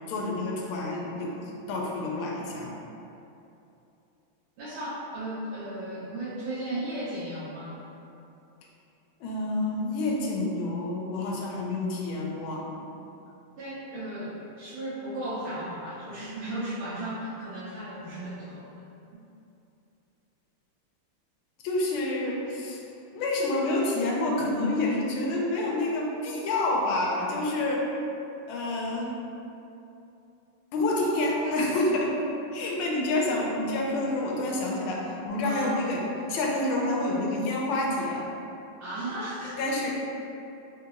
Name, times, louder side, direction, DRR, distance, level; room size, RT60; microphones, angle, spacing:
voice 1, 0.1-2.7 9.2-12.7 21.6-22.8 23.1-27.9 28.5-29.1 30.7-32.1 32.5-36.0 36.3-38.3 39.4-39.9, left 2 dB, 80° left, -2 dB, 1.4 m, -28 dB
voice 2, 4.6-7.8 13.6-18.7 35.4-35.8 38.8-39.8, right 1 dB, 75° right, -11 dB, 1.5 m, -35 dB
3.9 x 2.8 x 2.4 m, 2.8 s
omnidirectional pair, 2.4 m